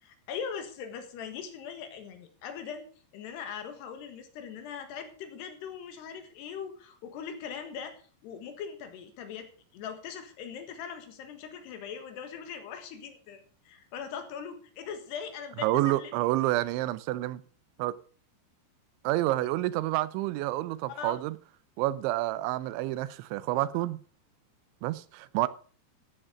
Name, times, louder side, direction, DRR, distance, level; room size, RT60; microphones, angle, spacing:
voice 1, 0.0-2.9 3.1-16.1 20.9-21.2, left 7 dB, 70° left, 3.5 m, -41 dB
voice 2, 15.6-17.4 17.8-17.9 19.0-21.4 21.8-24.0 24.8-25.5, right 16 dB, 90° right, 3.1 m, -28 dB
14.5 x 8.9 x 5.1 m
omnidirectional pair, 5.2 m